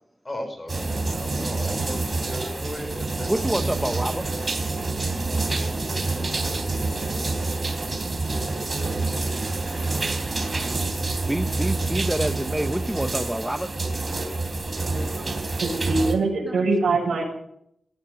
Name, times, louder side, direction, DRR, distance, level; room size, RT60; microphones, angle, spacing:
voice 1, 0.2-3.3 13.3-13.7, left 1 dB, 20° left, 5 dB, 4.2 m, -37 dB
sound 1, 0.7-16.1, right 3 dB, 30° right, 3.3 m, -27 dB
voice 2, 3.3-4.3 11.0-13.7 16.5-16.7, right 1 dB, 5° right, 8 dB, 0.7 m, -28 dB
voice 3, 15.6-17.2, right 3 dB, 80° right, 1 dB, 7.1 m, -23 dB
18.0 x 14.5 x 4.9 m, 0.73 s
wide cardioid pair, 170°, 0 cm